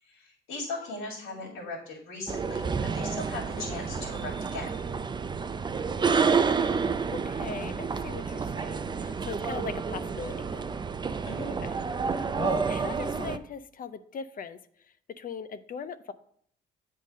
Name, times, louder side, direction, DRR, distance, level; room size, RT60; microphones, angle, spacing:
voice 1, 0.0-4.9 11.2-11.5, left 2 dB, 80° left, -4 dB, 2.2 m, -38 dB
voice 2, 1.2-1.7 3.7-3.9 6.9-10.8 11.6-11.8 12.1-16.1, left 6 dB, 45° left, 13 dB, 0.5 m, -40 dB
sound 1, 2.3-13.4, right 5 dB, 25° right, 0.4 m, -29 dB
8.1 x 3.8 x 5.1 m, 0.64 s
cardioid pair, 90°, 20 cm